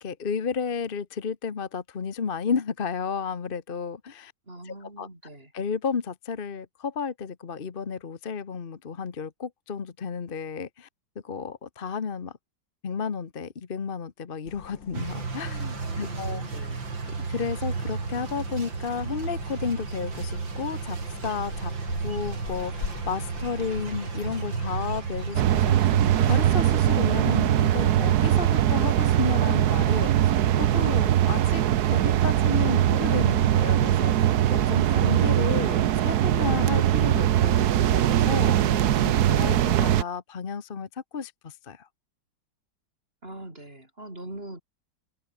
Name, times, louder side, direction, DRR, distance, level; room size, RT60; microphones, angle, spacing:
voice 1, 0.0-4.3 4.6-5.1 5.5-10.9 11.2-12.3 12.8-16.4 17.3-21.0 21.2-21.7 22.0-25.9 26.3-30.3 30.6-31.6 31.9-41.9, left 6 dB, 35° left, 1.1 m, -32 dB
voice 2, 4.5-5.5 15.8-16.8 43.2-44.6, right 1 dB, 30° right, 6.5 m, -42 dB
sound 1, 14.4-26.4, left 6 dB, 80° left, 3.0 m, -43 dB
sound 2, 14.9-26.4, right 4 dB, 90° right, 4.1 m, -33 dB
sound 3, 25.3-40.0, right 11 dB, 65° right, 1.3 m, -21 dB
omnidirectional pair, 2.0 m